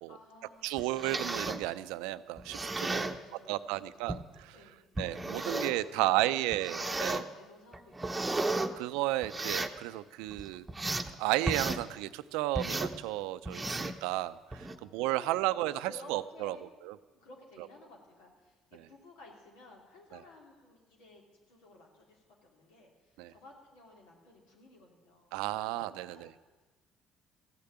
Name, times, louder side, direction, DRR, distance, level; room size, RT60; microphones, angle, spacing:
voice 1, 0.1-0.9 2.8-4.9 5.4-6.3 6.6-9.2 14.6-16.6 17.1-25.3 25.6-25.7 26.0-26.3, left 2 dB, 85° left, 0 dB, 3.1 m, -55 dB
voice 2, 0.6-3.1 3.5-4.5 5.0-7.2 8.8-10.6 11.2-16.6 16.9-17.0 20.1-20.2 23.2-23.3 25.3-26.3, right 16 dB, 85° right, 14 dB, 0.4 m, -33 dB
sound 1, 0.8-1.6 2.4-3.2 4.1-4.2 5.0-5.8 6.5-7.2 7.7-8.7 9.2-9.8 10.3-11.1 11.5-11.8 12.6-13.0 13.5-14.0 14.5-14.8, right 2 dB, 15° right, 0.9 m, -34 dB
15.5 x 6.8 x 9.3 m, 1.3 s
supercardioid pair, 75°, 0 cm